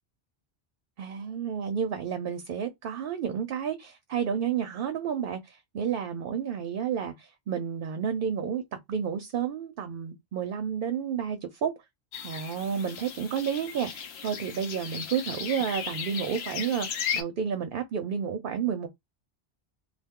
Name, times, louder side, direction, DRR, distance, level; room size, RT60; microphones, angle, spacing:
voice 1, 1.0-8.6 8.9-11.7 12.2-18.9, right 7 dB, 60° right, 0.7 m, -31 dB
sound 1, 12.1-17.2, left 8 dB, 70° left, 0.9 m, -36 dB
2.3 x 2.2 x 3.6 m
omnidirectional pair, 1.1 m